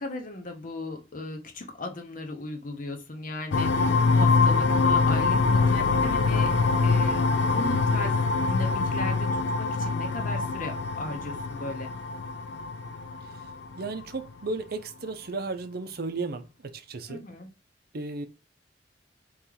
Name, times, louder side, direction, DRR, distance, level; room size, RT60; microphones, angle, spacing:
voice 1, 0.0-11.9 17.1-17.5, left 2 dB, 50° left, 0.9 m, -37 dB
sound 1, 3.5-14.0, left 4 dB, 90° left, 0.5 m, -24 dB
voice 2, 13.8-16.5 16.7-17.2 17.9-18.3, right 3 dB, 55° right, 0.6 m, -34 dB
4.3 x 3.1 x 3.9 m
head